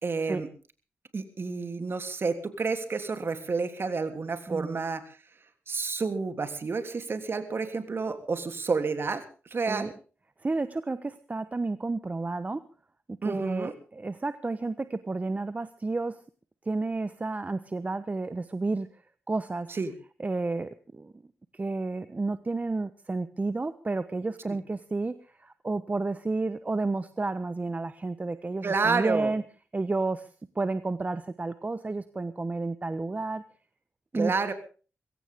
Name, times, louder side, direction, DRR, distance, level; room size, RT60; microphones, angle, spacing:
voice 1, 0.0-0.5 1.1-5.0 5.7-9.2 9.5-9.9 13.2-13.7 19.8-19.9 28.6-29.3 34.1-34.5, right 4 dB, 50° right, 8 dB, 3.2 m, -29 dB
voice 2, 4.5-4.8 9.7-9.9 10.4-12.6 13.2-16.2 16.6-19.0 19.3-19.7 20.2-21.1 21.5-29.4 29.7-30.3 30.5-33.4 34.1-34.3, right 3 dB, 30° right, 13 dB, 1.1 m, -31 dB
22.5 x 16.5 x 3.7 m, 0.37 s
cardioid pair, 60°, 5 cm